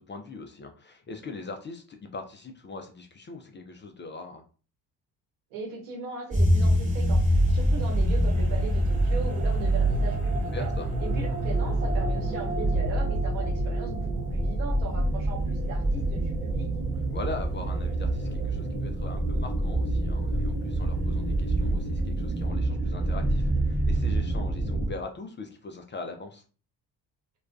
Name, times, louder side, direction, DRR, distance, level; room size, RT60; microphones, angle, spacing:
voice 1, 0.0-4.4 10.5-10.9 17.1-26.4, left 3 dB, 25° left, 4 dB, 0.3 m, -41 dB
voice 2, 5.5-10.7 11.0-16.7, right 4 dB, 80° right, -1 dB, 1.1 m, -38 dB
sound 1, 6.3-24.9, right 1 dB, 15° right, 1.1 m, -26 dB
2.3 x 2.2 x 2.4 m, 0.38 s
hypercardioid pair, 50°, 48 cm